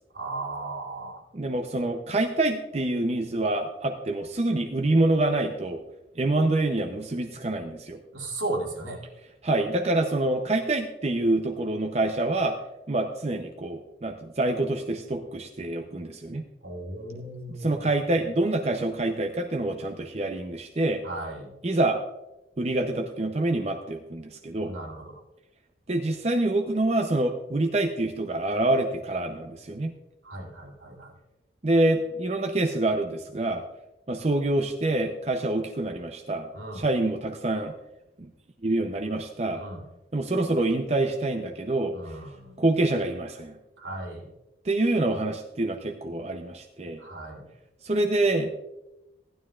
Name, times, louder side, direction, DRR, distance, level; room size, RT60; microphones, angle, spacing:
voice 1, 0.1-1.2 8.1-9.0 16.6-18.0 21.0-21.5 24.6-25.2 30.2-31.1 36.5-36.9 39.5-39.8 41.9-42.6 43.8-44.3 47.0-47.5, right 2 dB, 85° right, -2 dB, 2.8 m, -36 dB
voice 2, 1.3-5.8 6.2-8.0 9.4-12.6 12.9-16.4 17.6-21.0 21.6-22.0 22.6-24.7 25.9-29.9 31.6-33.6 34.1-36.5 36.7-37.7 38.6-39.6 40.1-42.0 42.6-43.5 44.6-47.0 47.8-48.5, right 2 dB, 35° right, 4 dB, 0.6 m, -26 dB
15.5 x 11.5 x 2.4 m, 0.94 s
head